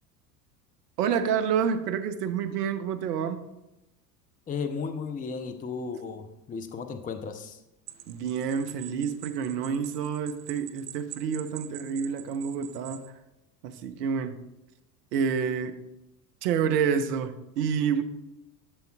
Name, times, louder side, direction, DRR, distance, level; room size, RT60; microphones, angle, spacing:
voice 1, 1.0-3.4 8.1-13.0 13.6-14.4 15.1-15.8 16.4-18.0, right 7 dB, 70° right, 9 dB, 0.9 m, -28 dB
voice 2, 4.5-7.6, left 5 dB, 15° left, 8 dB, 0.6 m, -34 dB
sound 1, 7.9-13.1, right 13 dB, 35° right, 0.5 m, -45 dB
11.0 x 6.9 x 2.3 m, 0.90 s
hypercardioid pair, 75°, 50 cm